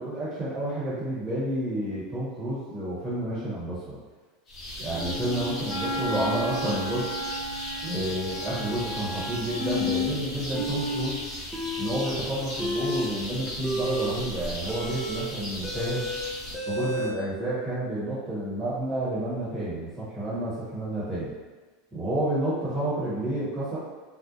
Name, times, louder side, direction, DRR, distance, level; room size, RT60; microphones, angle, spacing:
voice 1, 0.0-4.0 4.8-7.1 7.8-11.2 11.8-16.0 16.7-21.3 21.9-23.8, right 1 dB, 15° right, -10 dB, 1.0 m, -30 dB
sound 1, 4.5-16.6, left 1 dB, 35° left, 0.8 m, -37 dB
Wind instrument woodwind instrument, 4.9-9.7, equal, 75° left, 0.5 m, -34 dB
sound 2, 9.6-10.1 10.5-11.1 11.3-12.1 12.5-17.1, left 2 dB, 5° left, 0.5 m, -31 dB
2.6 x 2.0 x 2.5 m, 1.3 s
hypercardioid pair, 105°, 0 cm